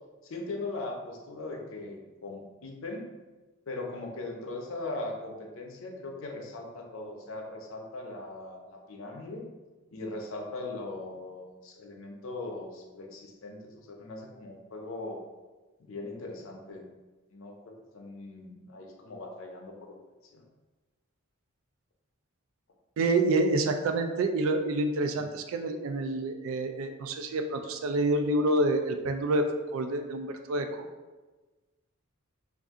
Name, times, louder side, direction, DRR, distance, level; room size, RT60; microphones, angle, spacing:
voice 1, 0.2-3.1 3.7-9.5 9.9-15.2 15.8-16.9 17.3-20.0 20.3-20.5 25.1-25.2, left 2 dB, 65° left, 1 dB, 0.5 m, -40 dB
voice 2, 23.0-29.5 29.7-30.7, right 2 dB, 65° right, 6 dB, 0.3 m, -27 dB
2.6 x 2.4 x 3.5 m, 1.2 s
head